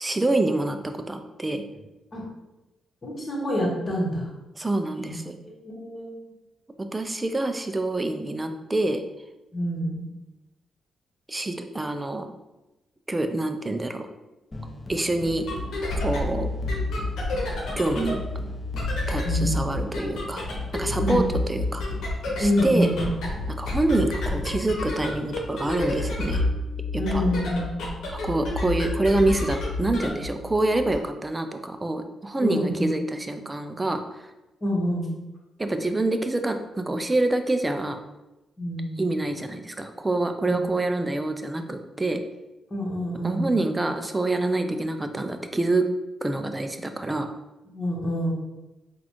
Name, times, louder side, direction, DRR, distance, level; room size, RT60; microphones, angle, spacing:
voice 1, 0.0-1.6 4.6-5.4 6.8-9.0 11.3-12.3 13.1-14.1 14.9-15.5 16.0-16.5 17.8-18.2 19.1-20.4 20.7-21.8 22.4-22.9 23.6-26.4 26.9-27.3 28.1-34.2 35.6-38.0 39.0-42.2 43.2-45.9 46.2-47.3, right 2 dB, 20° right, 7 dB, 0.4 m, -26 dB
voice 2, 3.0-4.3 5.0-5.1 5.4-6.1 9.5-10.1 19.2-19.6 21.0-21.2 22.4-23.1 27.0-28.0 32.4-32.8 34.6-35.1 38.6-39.1 42.7-43.6 47.7-48.3, equal, 40° left, -3 dB, 1.4 m, -27 dB
sound 1, 14.5-26.0, left 1 dB, 20° left, 0.7 m, -41 dB
sound 2, 15.3-30.9, left 2 dB, 75° left, 1.0 m, -30 dB
3.9 x 2.4 x 3.0 m, 1.0 s
supercardioid pair, 60°, 0 cm